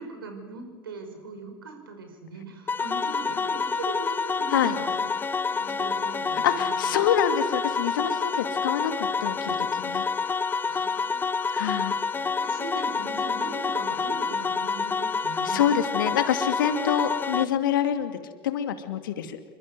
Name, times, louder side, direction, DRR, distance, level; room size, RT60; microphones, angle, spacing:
voice 1, 0.0-7.1 10.6-11.5 12.2-15.8, right 3 dB, 70° right, 6 dB, 5.6 m, -40 dB
sound 1, 2.7-17.4, left 5 dB, 15° left, 0.8 m, -28 dB
voice 2, 6.3-10.1 11.5-12.0 15.4-18.2 18.4-19.4, left 9 dB, 65° left, 8 dB, 2.5 m, -26 dB
28.5 x 24.0 x 7.9 m, 1.4 s
figure-of-eight pair, 75°, 12 cm